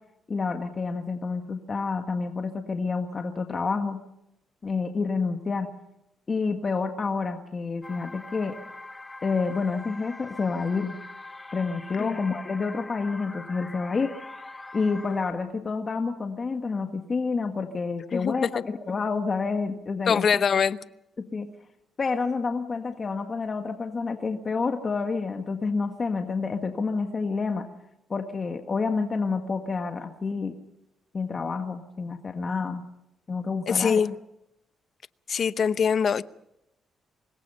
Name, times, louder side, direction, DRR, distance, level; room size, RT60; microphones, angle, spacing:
voice 1, 0.3-4.0 4.6-5.7 6.3-8.6 9.2-11.0 11.5-14.1 14.7-20.4 21.3-21.5 22.0-27.7 28.1-30.5 31.1-32.8 33.3-34.0, left 4 dB, 35° left, 1.7 m, -28 dB
sound 1, 7.8-15.3, left 2 dB, 20° left, 1.7 m, -42 dB
voice 2, 18.1-18.6 20.1-20.8 33.7-34.2 35.3-36.2, left 6 dB, 50° left, 0.8 m, -23 dB
25.5 x 21.0 x 5.6 m
cardioid pair, 90°, 0 cm